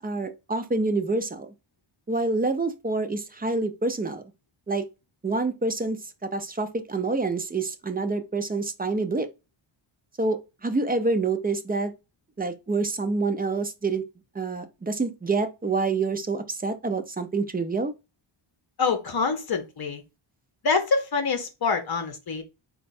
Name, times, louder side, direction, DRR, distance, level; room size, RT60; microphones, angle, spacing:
voice 1, 0.0-1.5 2.1-4.2 4.7-4.8 5.2-9.3 10.2-11.9 12.4-14.0 14.3-17.9, right 3 dB, 20° right, 0.4 m, -27 dB
voice 2, 18.8-20.0 20.6-22.4, left 4 dB, 45° left, 0.8 m, -25 dB
4.3 x 2.3 x 4.0 m
wide cardioid pair, 130°, 50 cm